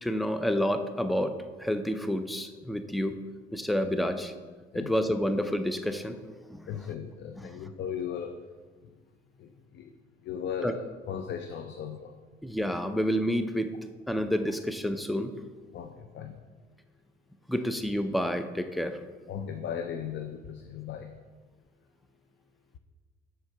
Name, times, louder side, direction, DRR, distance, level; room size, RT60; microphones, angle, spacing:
voice 1, 0.0-3.1 3.5-4.3 4.7-6.2 6.5-6.6 7.4-7.5 10.6-10.8 12.4-13.8 14.1-15.3 17.5-19.0, equal, ahead, 8 dB, 0.5 m, -29 dB
voice 2, 6.7-8.3 9.4-9.9 10.2-12.1 15.7-16.4 19.3-21.1, left 8 dB, 65° left, 7 dB, 0.5 m, -37 dB
6.3 x 4.5 x 5.8 m, 1.4 s
cardioid pair, 90°, 20 cm